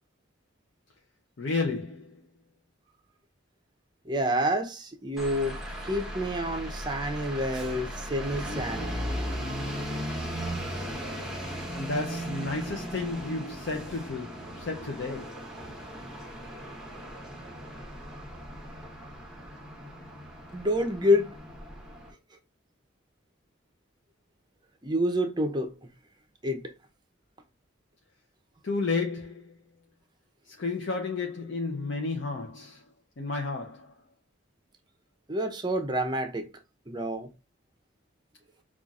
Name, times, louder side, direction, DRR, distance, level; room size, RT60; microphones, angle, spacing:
voice 1, 1.4-2.2 11.7-15.5 28.6-29.6 30.5-32.8 33.2-34.0, left 3 dB, 65° left, 0.6 m, -32 dB
voice 2, 4.0-9.0 20.5-21.4 24.8-25.7 26.4-26.7 35.3-36.5 36.9-37.3, equal, 20° right, 0.6 m, -28 dB
sound 1, 5.2-22.1, equal, 5° right, 0.9 m, -37 dB
5.5 x 2.4 x 2.4 m
head